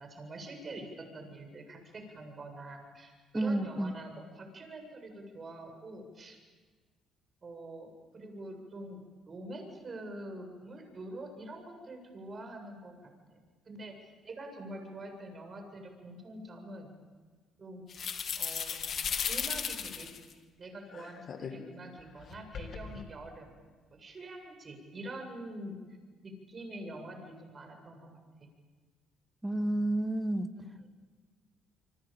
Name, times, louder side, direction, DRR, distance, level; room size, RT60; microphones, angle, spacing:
voice 1, 0.0-6.4 7.4-9.0 9.3-13.4 13.6-16.9 17.6-17.8 18.4-18.8 19.3-20.1 20.6-23.5 23.9-25.8 26.2-28.1 28.4-28.5 30.6-30.9, right 1 dB, 35° right, 4 dB, 7.8 m, -45 dB
voice 2, 3.3-3.9 29.4-30.5, right 1 dB, 10° right, 11 dB, 1.4 m, -30 dB
sound 1, 17.9-20.3 20.9-21.5 22.2-23.0, left 7 dB, 50° left, 2.5 m, -36 dB
27.0 x 24.0 x 9.1 m, 1.4 s
cardioid pair, 90°, 0 cm